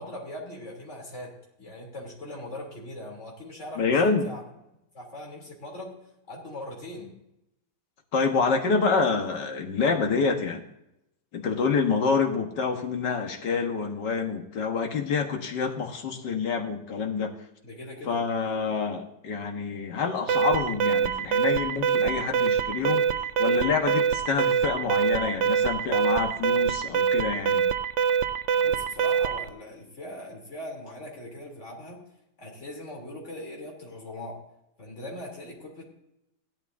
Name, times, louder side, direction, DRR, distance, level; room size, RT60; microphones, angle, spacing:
voice 1, 0.0-4.4 4.9-6.0 6.3-7.1 17.6-18.2 28.6-32.0 32.4-34.4 34.8-35.8, left 1 dB, 45° left, -1 dB, 3.7 m, -40 dB
voice 2, 3.8-4.3 8.1-10.6 11.3-17.3 18.1-23.1 23.4-27.7, left 5 dB, 90° left, 3 dB, 2.1 m, -27 dB
Alarm, 20.3-29.5, right 7 dB, 65° right, 0.7 m, -24 dB
16.5 x 12.0 x 2.7 m, 0.85 s
omnidirectional pair, 1.8 m